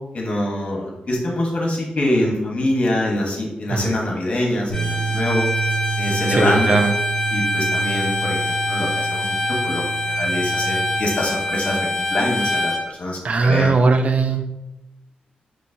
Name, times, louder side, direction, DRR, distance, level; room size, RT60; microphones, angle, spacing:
voice 1, 0.1-5.5 6.0-6.7 7.3-13.8, left 1 dB, 45° left, -1 dB, 1.1 m, -24 dB
Bowed string instrument, 4.7-12.8, left 1 dB, 20° left, 0.9 m, -24 dB
sound 1, 4.7-11.0, right 7 dB, 85° right, 1.1 m, -29 dB
voice 2, 6.3-6.9 13.2-14.5, right 3 dB, 50° right, 7 dB, 0.4 m, -19 dB
4.4 x 3.1 x 2.7 m, 0.94 s
cardioid pair, 85°, 3 cm